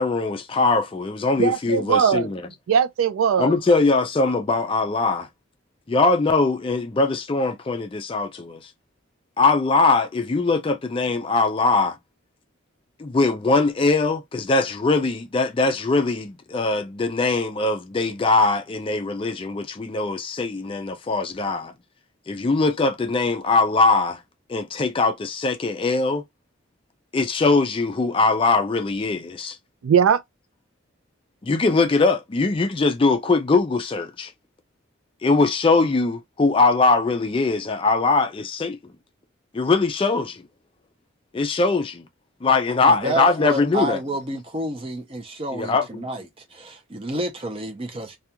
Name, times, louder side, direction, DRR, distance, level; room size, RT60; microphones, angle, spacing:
voice 1, 0.0-2.4 3.4-5.3 5.9-8.7 9.4-12.0 13.0-21.7 22.3-24.2 24.5-26.2 27.1-29.6 31.4-34.3 35.2-38.9 39.5-40.4 41.3-42.0 42.4-44.0 45.5-46.1, left 3 dB, 25° left, 0.3 m, -21 dB
voice 2, 1.4-2.3 2.7-3.5 29.8-30.2, right 7 dB, 85° right, 0.3 m, -19 dB
voice 3, 42.8-46.2 46.5-48.2, right 1 dB, 25° right, 0.5 m, -29 dB
2.3 x 2.2 x 2.8 m
head